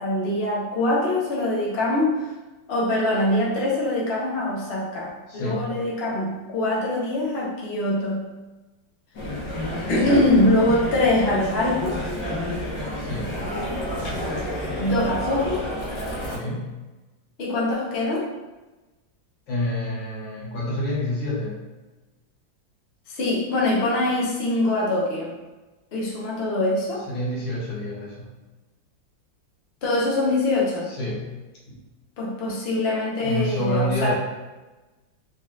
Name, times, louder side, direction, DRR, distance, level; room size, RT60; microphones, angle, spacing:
voice 1, 0.0-2.1 2.7-8.3 9.9-12.1 14.8-15.6 17.4-18.3 23.1-25.3 25.9-27.0 29.8-30.9 32.2-34.1, left 1 dB, 45° left, -5 dB, 0.9 m, -23 dB
voice 2, 5.3-5.7 10.1-10.3 13.0-13.4 16.2-16.7 19.5-21.6 27.1-28.3 30.9-31.3 31.7-31.8 33.2-34.1, left 1 dB, 90° left, -6 dB, 1.8 m, -28 dB
sound 1, 9.1-16.4, left 1 dB, 65° left, 1.4 m, -30 dB
4.0 x 2.5 x 3.1 m, 1.1 s
omnidirectional pair, 2.0 m